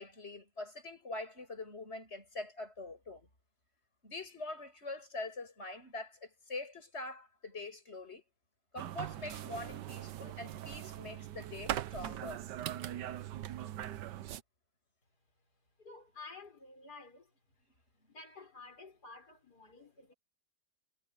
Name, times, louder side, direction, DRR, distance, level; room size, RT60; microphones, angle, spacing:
voice 1, 0.0-3.3 4.0-8.2 8.7-12.5, left 2 dB, 40° left, 8.0 m, -44 dB
sound 1, 8.8-14.4, right 12 dB, 90° right, 1.4 m, -41 dB
voice 2, 15.8-17.3 18.1-20.1, left 3 dB, 70° left, 6.9 m, -52 dB
omnidirectional pair, 1.8 m